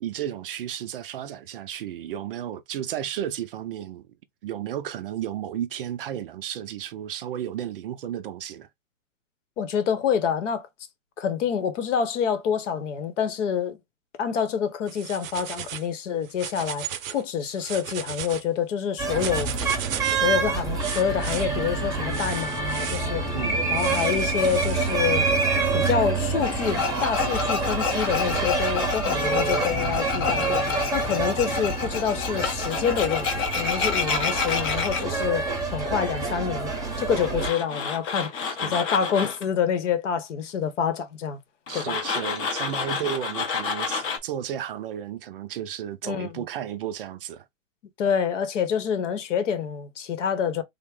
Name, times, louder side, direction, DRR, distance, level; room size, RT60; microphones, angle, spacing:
voice 1, 0.0-4.1 4.4-8.7 23.3-23.7 38.4-38.8 41.7-47.5, right 10 dB, 45° right, 0.4 m, -33 dB
voice 2, 9.6-10.7 11.2-13.8 14.2-16.9 17.1-19.5 20.1-23.2 23.7-25.3 25.7-30.6 30.9-36.7 37.0-41.4 41.7-42.0 46.0-46.4 48.0-50.6, left 7 dB, 65° left, 0.9 m, -27 dB
sound 1, 14.9-15.9 16.3-17.2 17.5-18.4 19.0-20.3 20.8-21.5 22.1-23.1 23.7-25.0, right 9 dB, 85° right, 0.7 m, -35 dB
sound 2, 19.0-37.5, right 3 dB, 10° right, 0.7 m, -27 dB
Tools, 26.4-35.0 37.2-39.4 41.7-44.2, left 5 dB, 25° left, 0.6 m, -29 dB
3.5 x 2.1 x 3.6 m
hypercardioid pair, 140°, 40 cm